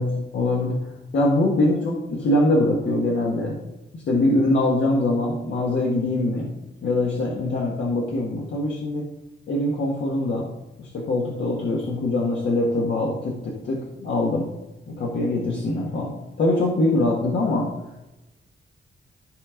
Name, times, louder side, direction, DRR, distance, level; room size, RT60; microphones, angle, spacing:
voice 1, 0.0-3.6 3.9-6.5 6.8-9.1 9.5-10.5 10.8-14.5 14.9-17.7, left 2 dB, 65° left, -3 dB, 1.7 m, -23 dB
14.0 x 5.2 x 3.8 m, 0.97 s
wide cardioid pair, 165°, 20 cm